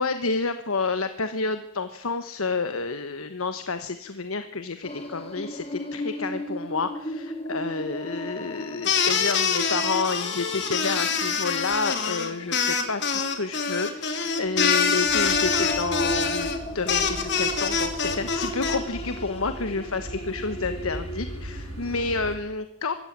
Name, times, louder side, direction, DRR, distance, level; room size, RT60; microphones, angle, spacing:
voice 1, 0.0-22.9, left 4 dB, 75° left, 9 dB, 1.2 m, -30 dB
sound 1, 4.8-22.1, equal, 25° left, 2.5 m, -37 dB
sound 2, 8.8-18.8, left 5 dB, 50° left, 3.0 m, -25 dB
sound 3, 15.0-22.4, equal, 80° right, 5.3 m, -39 dB
24.0 x 13.5 x 9.5 m, 0.77 s
head